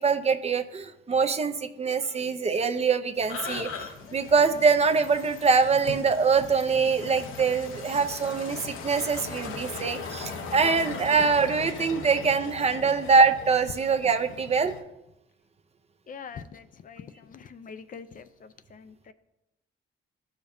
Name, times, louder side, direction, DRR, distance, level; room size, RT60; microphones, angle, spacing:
voice 1, 0.0-3.7 4.1-14.8, right 5 dB, 30° right, 8 dB, 0.6 m, -24 dB
sound 1, 3.2-14.8, left 5 dB, 90° left, 0.9 m, -39 dB
voice 2, 16.1-19.1, left 6 dB, 45° left, 11 dB, 0.5 m, -44 dB
13.5 x 5.1 x 2.7 m, 0.92 s
cardioid pair, 90°, 20 cm